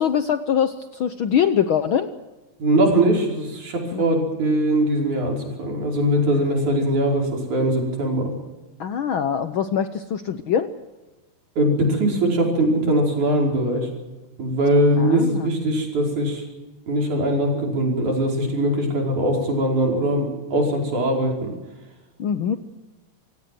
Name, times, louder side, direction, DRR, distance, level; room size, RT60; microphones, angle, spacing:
voice 1, 0.0-2.1 3.9-4.0 8.8-10.7 15.0-15.5 22.2-22.6, left 8 dB, 80° left, 10 dB, 1.1 m, -23 dB
voice 2, 2.6-8.3 11.6-13.9 14.4-16.4 16.9-21.5, right 1 dB, 70° right, 1 dB, 6.6 m, -21 dB
27.5 x 17.5 x 7.7 m, 1.1 s
omnidirectional pair, 3.5 m